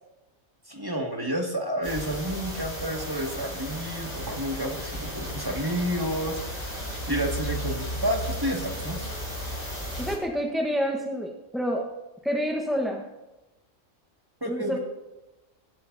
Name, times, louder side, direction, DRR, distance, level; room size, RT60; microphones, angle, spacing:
voice 1, 0.7-6.4 7.1-9.0 14.4-14.8, equal, 15° right, 0 dB, 1.9 m, -30 dB
sound 1, 1.8-10.2, equal, 30° left, 6.6 m, -34 dB
voice 2, 10.0-11.9 12.2-13.0 14.4-14.8, equal, ahead, 0 dB, 1.0 m, -28 dB
25.0 x 12.5 x 2.7 m, 1.0 s
omnidirectional pair, 1.4 m